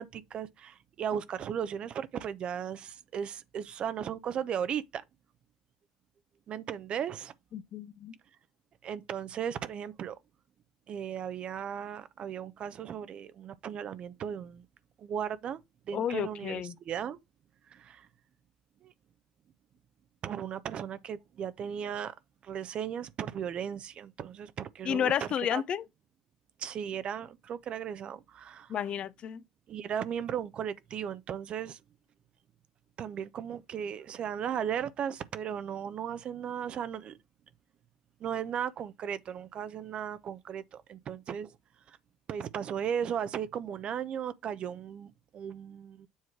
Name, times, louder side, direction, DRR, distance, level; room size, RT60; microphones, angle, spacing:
voice 1, 0.0-5.0 6.5-7.3 8.8-10.2 10.9-14.7 15.0-15.6 15.9-17.2 17.7-18.1 18.8-18.9 20.2-22.1 22.4-25.1 25.5-25.6 26.6-28.7 29.7-31.8 33.0-37.2 38.2-41.6 41.9-42.0 42.3-46.1, right 8 dB, 55° right, 0.7 m, -36 dB
voice 2, 7.5-8.1 15.9-16.8 24.8-25.9 28.7-29.4, left 9 dB, 55° left, 0.6 m, -31 dB
7.3 x 3.1 x 5.9 m
hypercardioid pair, 65°, 2 cm